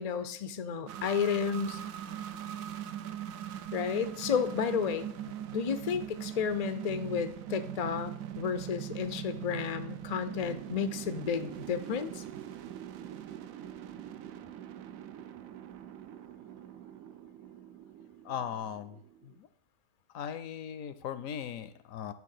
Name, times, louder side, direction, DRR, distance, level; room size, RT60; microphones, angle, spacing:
voice 1, 0.0-1.8 3.7-12.2, left 6 dB, 55° left, 10 dB, 0.4 m, -32 dB
sound 1, 0.9-19.4, right 10 dB, 70° right, 1.0 m, -42 dB
voice 2, 18.2-19.5 20.1-22.1, left 8 dB, 75° left, 13 dB, 1.0 m, -39 dB
10.5 x 3.5 x 6.5 m, 0.70 s
omnidirectional pair, 1.5 m